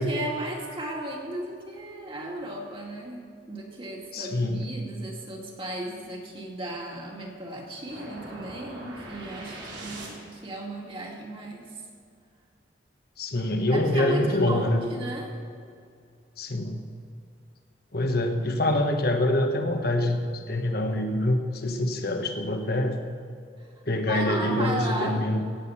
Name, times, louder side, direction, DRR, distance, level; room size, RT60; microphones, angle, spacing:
voice 1, 0.0-11.8 13.7-15.4 23.6-23.7 24.1-25.2, right 1 dB, 30° right, -1 dB, 2.3 m, -35 dB
voice 2, 4.1-4.7 13.2-14.9 16.4-16.8 17.9-23.0 23.9-25.4, left 1 dB, 55° left, 4 dB, 1.3 m, -25 dB
sound 1, 7.9-10.5, right 1 dB, 85° right, 3.3 m, -41 dB
17.0 x 8.2 x 5.8 m, 2.3 s
head